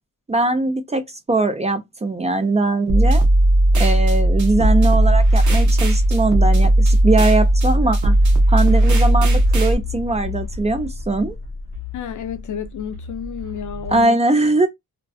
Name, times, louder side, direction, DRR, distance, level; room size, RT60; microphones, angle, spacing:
voice 1, 0.3-1.0 1.3-3.2 3.7-8.1 8.5-11.3 13.9-14.7, right 2 dB, 20° right, 0.4 m, -20 dB
sound 1, 2.9-9.7, right 1 dB, 55° right, 0.8 m, -15 dB
sound 2, 4.2-14.0, left 4 dB, 80° right, 1.1 m, -33 dB
voice 2, 11.9-14.2, left 8 dB, 60° left, 0.5 m, -31 dB
2.6 x 2.2 x 2.2 m
wide cardioid pair, 135°, 34 cm